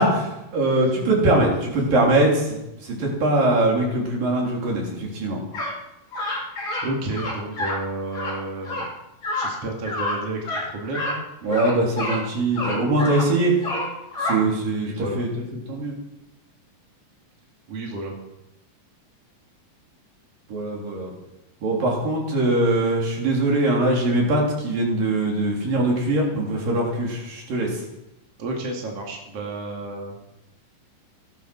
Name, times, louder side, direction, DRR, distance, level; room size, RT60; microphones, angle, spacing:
voice 1, 0.0-5.4 11.4-13.6 14.2-15.3 15.7-15.9 20.5-21.1 21.6-27.8, right 2 dB, 80° right, -2 dB, 5.3 m, -22 dB
sound 1, 5.5-5.8 6.1-6.9 7.1-7.8 8.1-8.3 8.7-8.9 9.2-9.5 9.8-10.2 10.4-10.6 10.9-11.2 11.5-12.2 12.6-13.3 13.6-14.4, left 2 dB, 35° left, 4.0 m, -28 dB
voice 2, 6.8-8.9 9.3-11.2 14.8-15.2 17.7-18.2 28.4-30.1, right 2 dB, 45° right, 0 dB, 3.2 m, -31 dB
16.5 x 12.5 x 6.2 m, 0.90 s
omnidirectional pair, 3.9 m